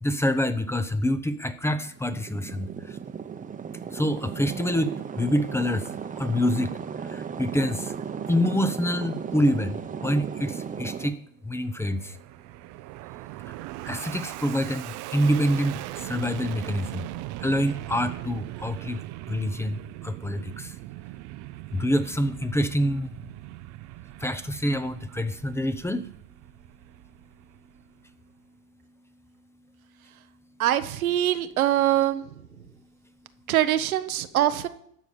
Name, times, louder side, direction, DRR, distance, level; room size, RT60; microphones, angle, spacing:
voice 1, 0.0-3.0 3.9-5.9 6.2-6.7 7.0-7.9 8.3-9.7 10.0-11.2 11.4-12.2 13.9-17.1 17.4-19.0 19.3-20.7 21.7-23.2 24.2-26.1, equal, 5° left, 10 dB, 0.7 m, -26 dB
sound 1, 1.8-11.1, right 7 dB, 20° right, 1.0 m, -35 dB
Fixed-wing aircraft airplane, 11.5-28.1, right 17 dB, 45° right, 0.6 m, -40 dB
voice 2, 30.6-32.3 33.5-34.7, right 12 dB, 90° right, 10 dB, 1.0 m, -23 dB
13.5 x 4.9 x 8.6 m, 0.68 s
hypercardioid pair, 105°, 41 cm